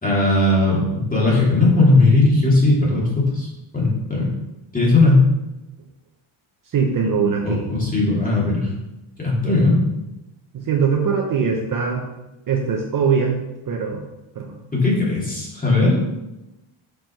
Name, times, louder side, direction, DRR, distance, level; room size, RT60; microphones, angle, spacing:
voice 1, 0.0-3.5 3.7-4.3 4.7-5.2 7.4-8.7 9.2-9.8 14.7-16.1, left 2 dB, 15° left, -5 dB, 2.5 m, -17 dB
voice 2, 6.7-7.6 10.5-12.1 12.5-14.0 14.4-14.6, right 6 dB, 40° right, 1 dB, 0.8 m, -21 dB
6.0 x 5.0 x 4.5 m, 0.97 s
cardioid pair, 135°, 50 cm